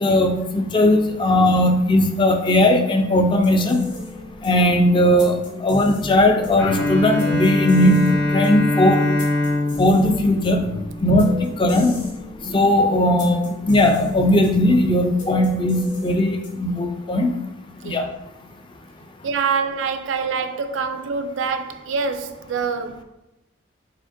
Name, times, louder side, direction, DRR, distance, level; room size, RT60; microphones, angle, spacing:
voice 1, 0.0-3.8 4.4-9.0 9.8-10.7 11.0-11.9 12.5-17.3 17.8-18.1, left 1 dB, 25° left, 0.4 m, -18 dB
sound 1, 3.3-16.8, left 1 dB, 40° left, 1.2 m, -35 dB
Bowed string instrument, 6.6-11.4, left 2 dB, 75° left, 0.9 m, -23 dB
voice 2, 17.8-18.1 19.2-23.0, right 5 dB, 75° right, 0.4 m, -25 dB
4.9 x 4.2 x 2.5 m
head